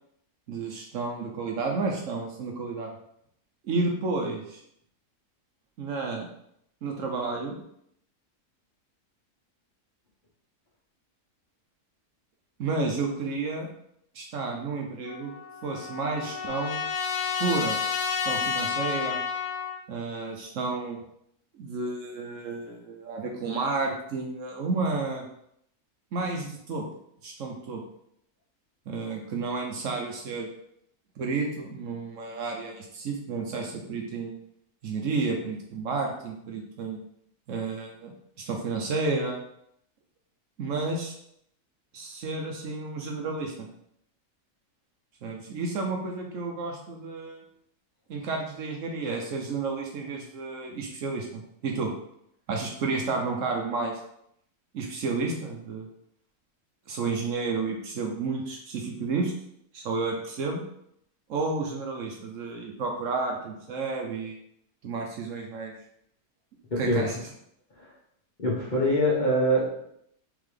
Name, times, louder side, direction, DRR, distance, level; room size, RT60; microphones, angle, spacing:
voice 1, 0.5-2.9 3.6-4.6 5.8-6.3 6.8-7.6 12.6-13.7 14.1-15.3 15.6-16.8 17.4-17.8 18.1-19.2 19.9-21.0 21.6-25.3 26.1-26.8 27.2-27.8 28.9-30.5 31.2-34.3 34.8-37.0 37.5-38.1 38.4-39.4 40.6-41.1 41.9-43.7 45.2-47.4 48.1-51.9 52.5-53.9 54.7-55.9 56.9-59.3 59.7-60.6 61.3-64.4 64.8-65.7 66.8-67.2, right 3 dB, 65° right, 1 dB, 1.0 m, -31 dB
Trumpet, 15.1-19.8, left 6 dB, 75° left, 1.0 m, -30 dB
voice 2, 66.7-67.0 67.8-67.9 68.4-69.9, equal, 35° left, -6 dB, 1.1 m, -24 dB
3.8 x 3.5 x 3.3 m, 0.73 s
omnidirectional pair, 1.6 m